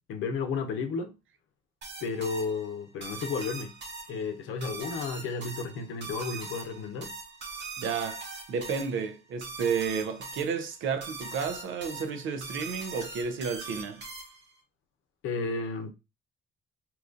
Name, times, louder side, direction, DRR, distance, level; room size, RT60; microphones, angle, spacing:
voice 1, 0.1-1.2 2.0-3.7 4.1-7.1 15.2-15.9, left 4 dB, 90° left, 0.7 m, -33 dB
sound 1, 1.8-14.6, right 3 dB, 60° right, 1.3 m, -42 dB
voice 2, 7.8-14.0, right 6 dB, 80° right, 0.7 m, -32 dB
2.9 x 2.4 x 3.8 m
cardioid pair, 90°, 20 cm